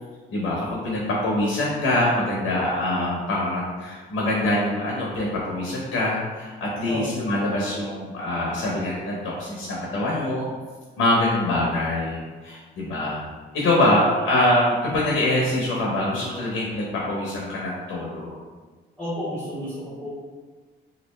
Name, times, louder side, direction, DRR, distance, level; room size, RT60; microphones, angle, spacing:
voice 1, 0.3-10.5 11.0-13.2 13.5-18.4, left 1 dB, 80° left, -4 dB, 0.9 m, -24 dB
voice 2, 13.9-14.3 19.0-20.1, equal, 5° left, -11 dB, 1.2 m, -32 dB
3.1 x 2.6 x 3.1 m, 1.4 s
cardioid pair, 90°, 20 cm